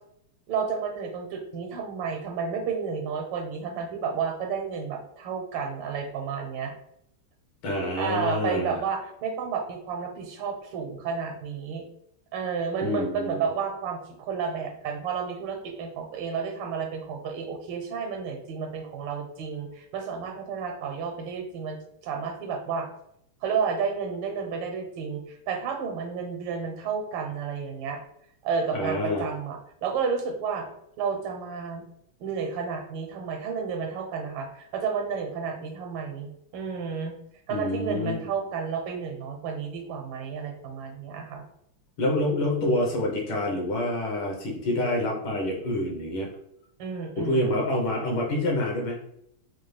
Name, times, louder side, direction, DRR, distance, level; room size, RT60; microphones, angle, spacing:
voice 1, 0.5-6.7 8.0-11.9 12.3-21.8 22.0-22.9 23.4-28.0 28.4-30.7 31.0-31.9 32.2-37.1 37.5-41.4 46.8-47.6, right 6 dB, 85° right, 4 dB, 1.6 m, -31 dB
voice 2, 7.6-8.8 12.8-13.4 28.7-29.2 37.5-38.3 42.0-46.3 47.2-49.0, left 1 dB, 70° left, -1 dB, 1.6 m, -27 dB
4.5 x 2.3 x 3.2 m, 0.74 s
omnidirectional pair, 2.4 m